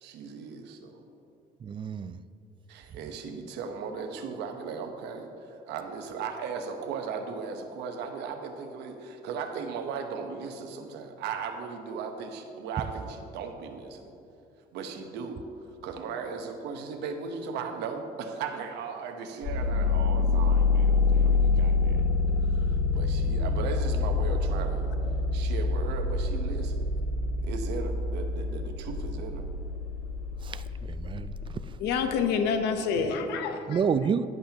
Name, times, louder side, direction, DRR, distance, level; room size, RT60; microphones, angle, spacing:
voice 1, 0.0-1.0 2.7-14.1 14.7-15.4 15.8-22.0 22.5-24.9 25.3-26.8 27.4-29.4, right 5 dB, 85° right, 5 dB, 1.0 m, -37 dB
voice 2, 1.6-2.2 30.4-31.6 33.7-34.3, right 6 dB, 30° right, 13 dB, 0.4 m, -29 dB
sound 1, 19.4-32.1, left 3 dB, 55° left, 0.8 m, -27 dB
voice 3, 31.8-33.8, left 5 dB, 85° left, 7 dB, 0.9 m, -27 dB
11.5 x 10.5 x 2.9 m, 2.8 s
cardioid pair, 110°, 17 cm